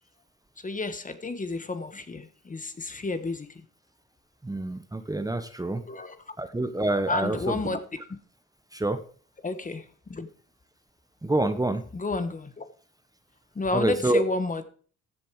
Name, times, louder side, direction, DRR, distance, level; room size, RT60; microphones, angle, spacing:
voice 1, 0.6-3.6 5.9-6.3 7.1-8.0 9.4-10.3 11.9-12.7 13.5-14.6, left 3 dB, 25° left, 10 dB, 1.4 m, -31 dB
voice 2, 4.4-5.8 6.4-7.6 8.7-9.0 11.2-11.8 13.7-14.2, right 2 dB, 10° right, 10 dB, 1.1 m, -27 dB
15.0 x 7.3 x 4.8 m, 0.43 s
cardioid pair, 90°, 30 cm